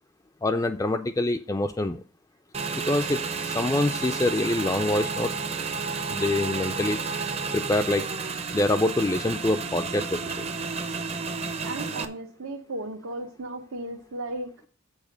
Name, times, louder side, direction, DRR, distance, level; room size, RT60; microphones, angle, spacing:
voice 1, 0.4-2.0 2.7-5.3 6.1-7.0 7.5-8.1 8.5-10.5, left 2 dB, 15° left, 6 dB, 0.3 m, -25 dB
Motorcycle / Engine, 2.5-12.1, right 4 dB, 30° right, 0.6 m, -31 dB
voice 2, 11.6-14.7, right 2 dB, 85° right, 3 dB, 0.9 m, -35 dB
7.2 x 4.9 x 6.4 m, 0.42 s
head